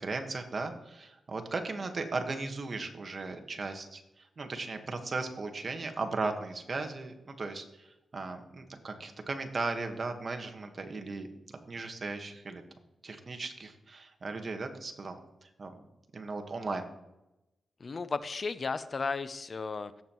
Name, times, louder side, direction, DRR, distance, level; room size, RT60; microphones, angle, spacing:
voice 1, 0.0-7.9 8.1-12.6 13.0-15.2 15.4-15.7 16.1-16.9, right 3 dB, 45° right, 5 dB, 1.4 m, -37 dB
voice 2, 17.8-20.0, left 4 dB, 45° left, 14 dB, 0.6 m, -34 dB
17.0 x 7.2 x 3.1 m, 0.94 s
cardioid pair, 75°, 0 cm